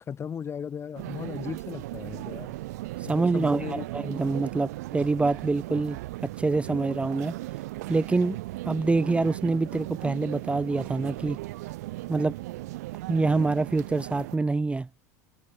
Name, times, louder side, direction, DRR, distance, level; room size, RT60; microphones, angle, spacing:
voice 1, 0.1-2.5 3.0-3.9, left 7 dB, 30° left, 1.7 m, -36 dB
sound 1, 0.9-14.4, right 19 dB, 70° right, 2.5 m, -37 dB
voice 2, 3.1-7.4 7.9-8.4 8.6-11.4 12.1-12.3 13.1-14.9, right 3 dB, 15° right, 1.2 m, -26 dB
hypercardioid pair, 85°, 9 cm